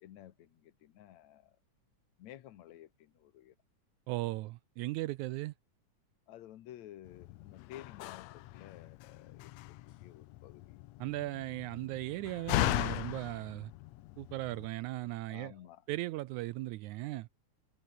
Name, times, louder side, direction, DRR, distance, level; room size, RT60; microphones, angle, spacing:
voice 1, 0.0-1.6 2.2-3.6 6.3-10.8 15.3-15.8, left 12 dB, 65° left, 2.4 m, -53 dB
voice 2, 4.1-5.5 11.0-13.7 14.2-15.5 15.9-17.3, right 18 dB, 80° right, 1.9 m, -37 dB
Slam, 7.1-14.7, left 17 dB, 80° left, 1.5 m, -38 dB
omnidirectional pair, 3.7 m